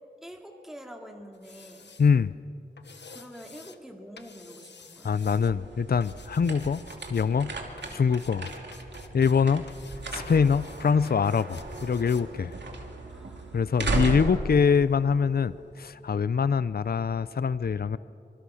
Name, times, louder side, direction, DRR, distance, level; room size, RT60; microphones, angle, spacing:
voice 1, 0.2-1.9 3.1-5.2 7.8-8.0 13.0-13.7 15.9-16.1, equal, ahead, 2 dB, 2.5 m, -46 dB
sound 1, 1.3-2.1 2.8-3.8 4.2-5.5 6.0-7.3 7.8-9.4 9.7-12.2 12.5-12.6, left 5 dB, 85° left, 1.2 m, -51 dB
voice 2, 2.0-2.3 5.0-6.8 7.1-7.5 7.9-8.5 9.1-9.6 10.1-12.5 13.5-18.0, left 6 dB, 60° left, 16 dB, 0.5 m, -24 dB
sound 2, 5.2-15.8, right 3 dB, 85° right, 2.6 m, -36 dB
25.5 x 25.5 x 6.4 m, 2.6 s
wide cardioid pair, 70°, 18 cm